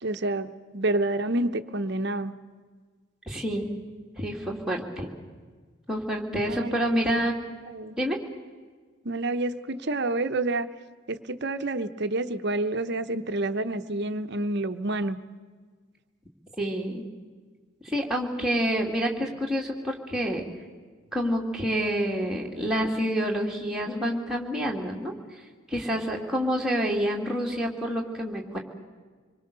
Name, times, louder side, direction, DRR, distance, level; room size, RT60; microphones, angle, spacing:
voice 1, 0.0-2.3 6.3-7.0 7.7-8.0 9.0-10.7 11.1-15.2, right 2 dB, 50° right, 8 dB, 0.9 m, -28 dB
voice 2, 3.3-3.7 4.2-5.1 5.9-7.3 8.0-8.2 16.6-17.0 17.8-20.4 21.1-25.1 25.7-28.6, equal, 5° right, -2 dB, 2.7 m, -28 dB
26.0 x 22.5 x 6.9 m, 1.5 s
head